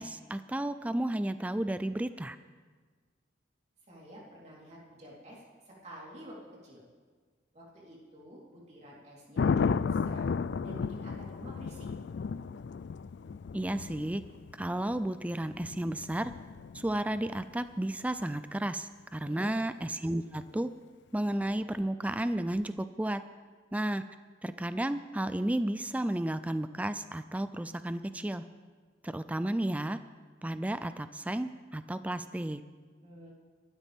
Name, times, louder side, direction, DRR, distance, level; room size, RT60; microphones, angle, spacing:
voice 1, 0.0-2.4 13.5-14.2 14.6-16.3 16.7-20.7 21.1-23.2 23.7-24.0 24.4-28.4 29.0-30.0 30.4-32.6, right 1 dB, 10° right, 12 dB, 0.3 m, -32 dB
voice 2, 3.9-6.4 6.6-6.8 7.5-10.3 10.6-11.9 19.2-19.6 33.0-33.3, equal, 40° right, -5 dB, 3.7 m, -50 dB
Thunder, 9.4-17.4 20.1-20.5, left 5 dB, 70° left, 0.3 m, -34 dB
24.0 x 12.5 x 3.5 m, 1.5 s
head